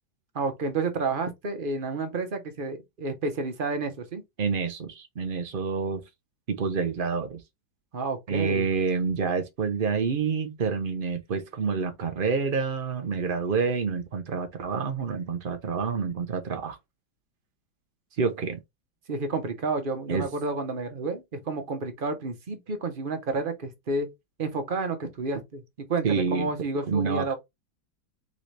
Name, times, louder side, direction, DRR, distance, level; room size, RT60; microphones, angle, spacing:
voice 1, 0.3-4.2 7.9-8.7 19.1-24.1 24.4-27.3, right 3 dB, 40° right, 0.7 m, -30 dB
voice 2, 4.4-6.0 6.5-7.4 8.3-16.8 18.2-18.6 20.1-20.3 26.0-26.5 26.9-27.3, right 5 dB, 75° right, 0.4 m, -28 dB
4.1 x 3.9 x 3.2 m
omnidirectional pair, 2.0 m